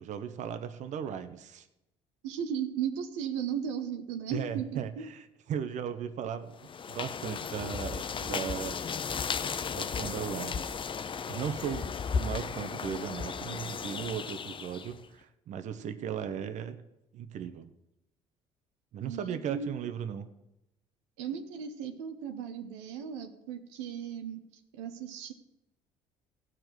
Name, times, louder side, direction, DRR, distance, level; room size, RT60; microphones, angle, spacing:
voice 1, 0.0-1.7 4.3-8.8 9.7-16.8 17.1-17.7 18.9-20.3, right 8 dB, 60° right, 10 dB, 1.0 m, -37 dB
voice 2, 2.2-5.1 19.0-19.8 21.2-24.4 24.7-25.3, right 8 dB, 85° right, 6 dB, 1.0 m, -36 dB
sound 1, 6.6-15.0, left 6 dB, 35° left, 0.7 m, -35 dB
15.0 x 5.1 x 7.9 m, 0.89 s
hypercardioid pair, 65°, 14 cm